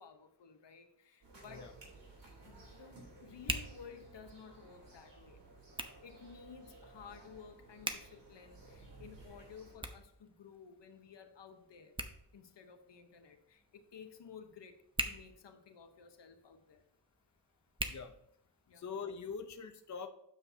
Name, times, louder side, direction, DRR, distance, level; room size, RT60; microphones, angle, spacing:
voice 1, 0.0-1.7 2.4-5.4 6.0-12.0 12.3-16.9 18.7-18.9, left 6 dB, 80° left, 7 dB, 1.0 m, -55 dB
Hands, 1.2-18.9, right 1 dB, 10° right, 0.8 m, -47 dB
sound 1, 1.2-9.7, right 2 dB, 75° right, 3.4 m, -56 dB
voice 2, 17.8-18.1 18.7-20.1, left 5 dB, 45° left, 6 dB, 0.7 m, -43 dB
9.4 x 7.2 x 2.8 m, 0.76 s
wide cardioid pair, 105°, 42 cm